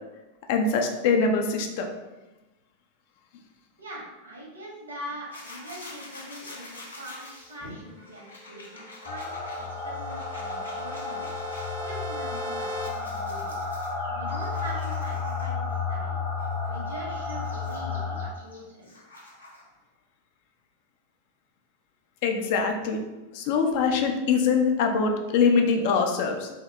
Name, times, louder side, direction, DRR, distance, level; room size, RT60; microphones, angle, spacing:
voice 1, 0.5-1.9 22.2-23.0 23.3-26.5, left 5 dB, 50° left, 3 dB, 0.4 m, -23 dB
voice 2, 3.8-11.3 11.8-13.6 14.1-16.2 16.7-18.9, equal, 80° right, -4 dB, 1.1 m, -42 dB
sound 1, 5.3-11.7 12.1-15.7 16.3-19.7, left 2 dB, 75° left, 0.8 m, -47 dB
sound 2, 8.0-12.9, left 1 dB, 45° right, 0.5 m, -40 dB
sound 3, 9.1-18.3, left 4 dB, 30° left, 0.8 m, -32 dB
2.8 x 2.7 x 3.2 m, 1.1 s
figure-of-eight pair, 90°, 0 cm